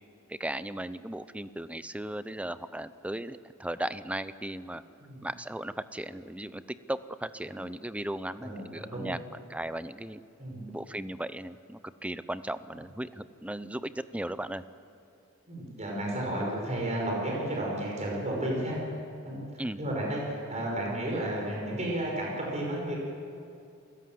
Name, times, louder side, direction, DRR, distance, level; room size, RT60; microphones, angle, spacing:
voice 1, 0.3-4.8 5.2-10.2 10.7-14.6 19.6-19.8, right 1 dB, 5° right, 14 dB, 0.6 m, -36 dB
voice 2, 10.4-10.7 15.5-18.8 19.2-23.0, right 1 dB, 35° right, -2 dB, 5.6 m, -32 dB
28.5 x 17.0 x 7.8 m, 2.5 s
head